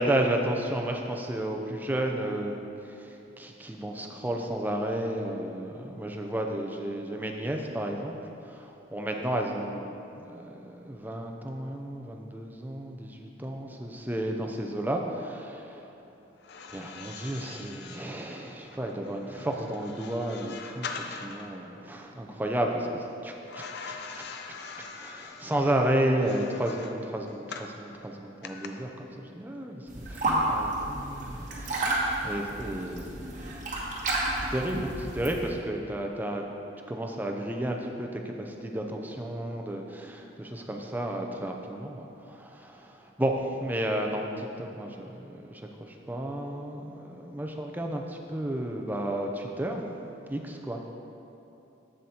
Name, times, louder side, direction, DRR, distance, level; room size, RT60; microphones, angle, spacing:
voice 1, 0.0-2.5 2.8-8.2 8.4-15.8 16.7-33.6 34.3-36.4 36.9-49.8 50.3-50.9, right 1 dB, 10° right, 2 dB, 0.4 m, -32 dB
sound 1, 16.4-21.5 23.5-27.8 28.4-28.7, left 5 dB, 60° left, 0.4 m, -43 dB
sound 2, 29.9-35.5, right 1 dB, 45° right, 1.1 m, -31 dB
7.7 x 7.6 x 2.8 m, 2.8 s
head